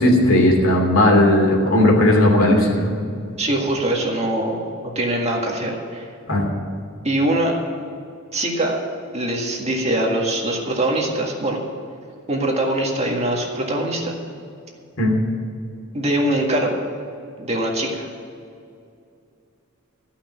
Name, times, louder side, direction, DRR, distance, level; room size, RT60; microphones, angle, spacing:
voice 1, 0.0-2.9 6.3-6.5 15.0-15.1, left 1 dB, 65° left, 0 dB, 2.8 m, -16 dB
voice 2, 3.4-4.6 5.0-6.1 7.0-7.6 8.3-8.8 9.1-11.6 12.3-14.1 15.9-16.8 17.4-18.1, right 1 dB, 30° right, 0 dB, 1.8 m, -22 dB
14.5 x 5.9 x 9.1 m, 2.5 s
head